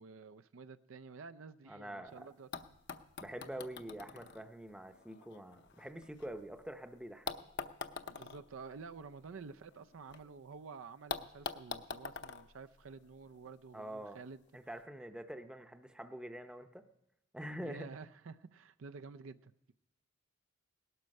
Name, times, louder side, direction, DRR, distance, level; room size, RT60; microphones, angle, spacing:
voice 1, 0.0-2.5 3.5-3.6 8.1-14.4 17.6-19.7, right 4 dB, 80° right, 0.5 m, -50 dB
voice 2, 1.7-2.3 3.2-7.3 13.7-14.2 14.5-16.8 17.3-17.9, right 1 dB, 5° right, 0.7 m, -46 dB
sound 1, 2.1-2.2 2.5-6.6 7.3-10.2 10.5-10.6 11.1-13.5 14.5-14.6, left 4 dB, 55° left, 0.7 m, -46 dB
18.5 x 12.5 x 5.3 m
head